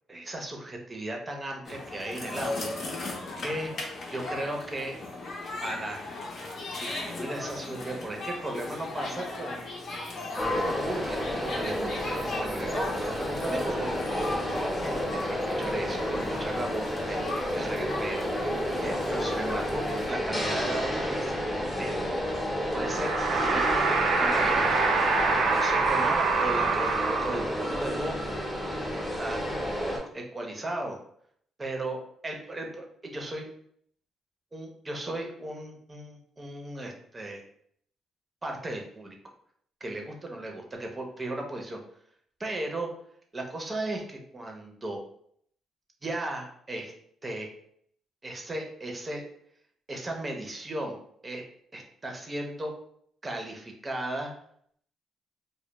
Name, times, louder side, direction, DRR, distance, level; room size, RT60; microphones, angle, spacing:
voice 1, 0.1-2.8 3.4-5.0 5.6-6.0 6.8-9.6 10.3-14.6 14.8-14.9 15.3-17.2 17.5-18.2 18.8-21.4 21.8-21.9 22.7-24.9 25.3-28.2 28.7-29.4 29.8-31.0 31.6-32.0 32.2-33.5 34.5-37.4 38.4-39.2 39.8-41.8 42.4-42.9 43.3-45.0 46.0-46.9 47.2-47.5 48.2-49.2 49.9-51.0 51.2-51.4 51.7-52.7 53.2-54.3, right 1 dB, 25° right, 2 dB, 0.6 m, -36 dB
sound 1, 1.6-20.1, left 2 dB, 55° left, 0.6 m, -37 dB
sound 2, 10.4-30.0, equal, 15° left, 0.7 m, -31 dB
sound 3, 22.7-27.8, right 4 dB, 80° right, 0.4 m, -25 dB
2.2 x 2.1 x 2.9 m, 0.66 s
cardioid pair, 90°, 0 cm